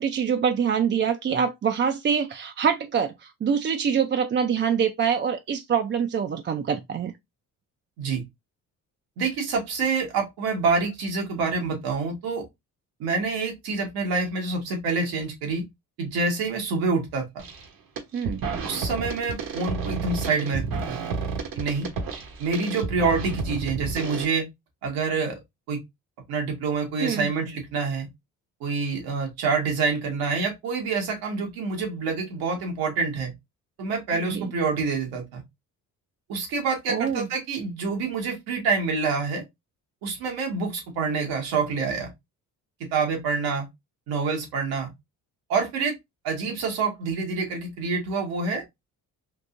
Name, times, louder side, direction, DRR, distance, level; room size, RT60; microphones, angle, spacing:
voice 1, 0.0-7.1 18.1-18.4 27.0-27.3 34.3-34.5 36.9-37.3, right 7 dB, 30° right, 0.4 m, -25 dB
voice 2, 9.2-12.4 13.0-15.6 16.0-17.4 18.6-21.0 21.5-21.9 22.4-24.5 24.8-25.4 25.7-25.8 26.3-28.1 28.6-33.3 33.8-35.4 36.3-39.4 40.0-42.1 42.9-43.7 44.1-44.9 45.5-45.9 46.2-48.7, right 4 dB, 90° right, 1.5 m, -27 dB
sound 1, 17.4-17.7 18.0-24.3, right 5 dB, 70° right, 1.1 m, -31 dB
3.7 x 2.8 x 2.5 m
supercardioid pair, 75°, 36 cm